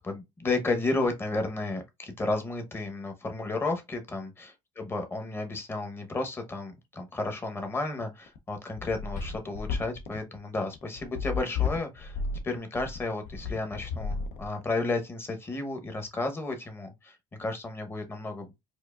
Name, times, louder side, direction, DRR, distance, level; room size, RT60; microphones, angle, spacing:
voice 1, 0.0-4.3 4.8-12.2 12.4-18.5, left 2 dB, 20° left, 0.9 m, -32 dB
sound 1, 8.3-14.8, left 5 dB, 75° left, 0.6 m, -33 dB
4.5 x 2.5 x 2.3 m
cardioid pair, 135°, 12 cm